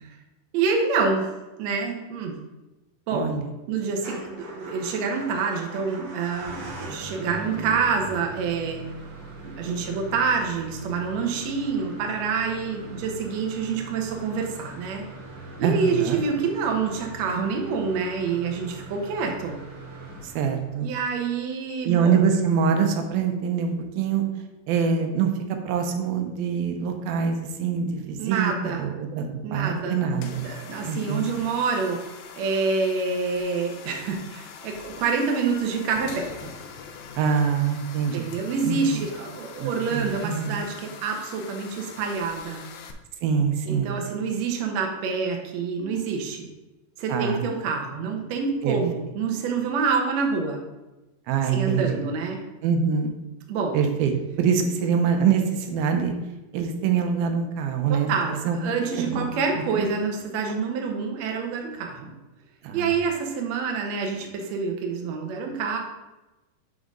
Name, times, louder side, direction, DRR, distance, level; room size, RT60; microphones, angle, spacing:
voice 1, 0.5-1.3 1.6-2.3 3.1-3.3 3.7-8.8 9.4-15.0 15.6-19.6 20.8-22.3 28.2-28.9 29.4-30.0 30.4-32.0 32.4-36.5 38.1-42.6 43.7-46.5 47.0-50.6 51.5-52.4 53.5-53.8 57.9-62.1 62.7-65.8, right 5 dB, 65° right, 2 dB, 1.8 m, -27 dB
voice 2, 3.1-3.5 15.6-16.2 20.2-20.9 21.8-24.2 24.7-25.3 25.7-30.5 30.8-31.3 37.2-38.3 38.6-39.0 39.6-40.6 43.2-44.0 47.1-47.5 48.6-48.8 51.3-52.1 52.6-53.1 53.7-56.1 56.5-58.1 58.4-58.6 59.0-59.9 62.6-62.9, right 6 dB, 85° right, 5 dB, 2.6 m, -24 dB
Motor vehicle (road) / Engine starting / Idling, 3.9-20.9, right 1 dB, 50° right, 2.1 m, -41 dB
sound 1, 30.1-42.9, left 6 dB, 85° left, 2.5 m, -43 dB
11.5 x 3.9 x 3.7 m, 1.0 s
omnidirectional pair, 4.1 m